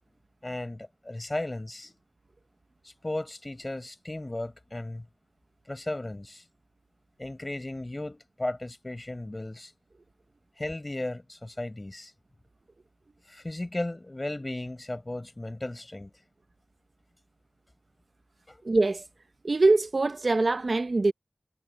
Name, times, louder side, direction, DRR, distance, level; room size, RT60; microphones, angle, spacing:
voice 1, 0.4-2.0 2.8-5.0 5.7-6.4 7.2-9.7 10.6-12.1 13.3-16.1 18.5-18.6, left 1 dB, 30° left, 5.5 m, -35 dB
voice 2, 18.6-19.0 19.4-21.1, right 3 dB, 60° right, 0.9 m, -23 dB
wide cardioid pair, 70°, 0 cm